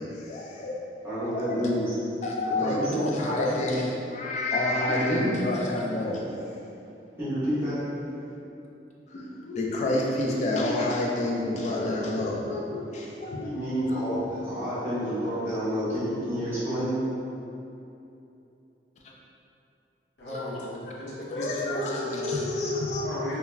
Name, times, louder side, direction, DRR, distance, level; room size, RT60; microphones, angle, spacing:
voice 1, 0.0-0.9 1.2-1.7 2.2-6.2 9.1-13.5 13.8-14.0 20.3-20.5 21.3-23.0, left 2 dB, 40° left, -2 dB, 0.3 m, -29 dB
voice 2, 1.0-2.0 2.6-3.5 4.9-5.4 7.2-7.8 13.4-17.0, equal, 15° right, -13 dB, 0.8 m, -29 dB
voice 3, 20.2-22.3 23.0-23.4, equal, 80° left, -8 dB, 0.7 m, -36 dB
2.3 x 2.1 x 3.1 m, 2.8 s
head